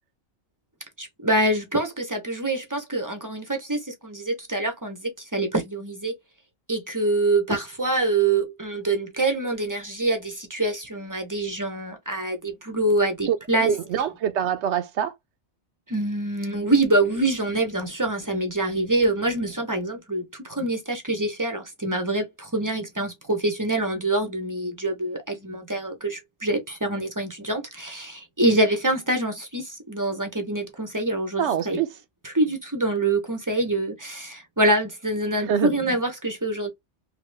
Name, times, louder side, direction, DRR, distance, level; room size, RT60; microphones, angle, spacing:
voice 1, 1.0-6.1 6.7-13.7 15.9-31.8 32.2-36.7, right 2 dB, 25° right, 0.5 m, -25 dB
voice 2, 13.6-15.1 31.4-31.9 35.3-35.7, right 8 dB, 75° right, 0.8 m, -24 dB
2.9 x 2.7 x 3.2 m
omnidirectional pair, 1.2 m